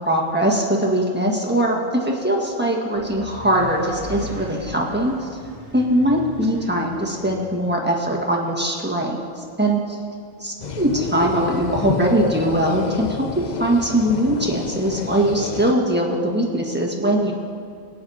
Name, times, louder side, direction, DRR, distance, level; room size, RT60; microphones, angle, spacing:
voice 1, 0.0-5.3 5.7-10.0 10.4-17.3, right 1 dB, 10° right, -2 dB, 1.5 m, -21 dB
sound 1, 2.9-7.5, equal, 60° right, 1.8 m, -38 dB
sound 2, 10.6-15.7, left 6 dB, 65° left, 0.4 m, -30 dB
23.5 x 9.4 x 2.8 m, 2.3 s
omnidirectional pair, 1.3 m